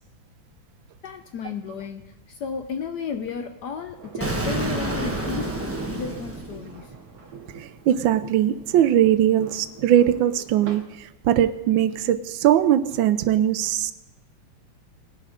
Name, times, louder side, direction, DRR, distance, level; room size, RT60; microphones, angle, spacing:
voice 1, 1.0-6.9, left 6 dB, 65° left, 7 dB, 1.1 m, -34 dB
sound 1, 3.9-10.8, right 6 dB, 50° right, 1.7 m, -44 dB
Explosion, 4.2-7.1, right 2 dB, 10° right, 0.8 m, -29 dB
voice 2, 7.6-13.9, right 11 dB, 75° right, 13 dB, 1.3 m, -20 dB
18.5 x 7.4 x 5.1 m, 1.0 s
omnidirectional pair, 2.3 m